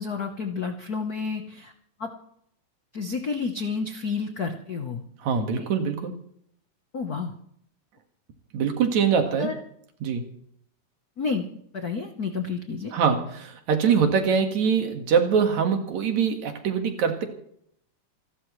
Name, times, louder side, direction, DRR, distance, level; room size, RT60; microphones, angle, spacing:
voice 1, 0.0-1.7 2.0-2.1 2.9-5.0 5.6-5.7 6.9-7.3 9.4-9.5 11.2-11.4 11.7-12.9, left 5 dB, 60° left, 4 dB, 0.9 m, -30 dB
voice 2, 5.2-6.1 8.5-9.5 10.0-10.2 12.9-17.2, right 6 dB, 75° right, 5 dB, 3.1 m, -23 dB
27.5 x 12.5 x 3.2 m, 0.69 s
omnidirectional pair, 3.3 m